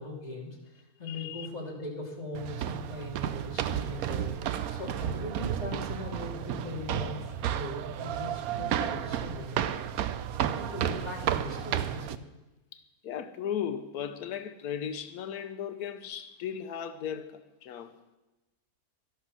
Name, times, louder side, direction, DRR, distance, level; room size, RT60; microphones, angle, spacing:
voice 1, 0.0-9.6 10.3-12.2, left 2 dB, 25° left, -2 dB, 2.7 m, -40 dB
voice 2, 1.0-1.5 12.7-17.9, left 8 dB, 90° left, 9 dB, 1.2 m, -36 dB
sound 1, 2.3-12.2, right 10 dB, 80° right, 1.1 m, -32 dB
12.5 x 11.5 x 6.1 m, 1.1 s
omnidirectional pair, 1.5 m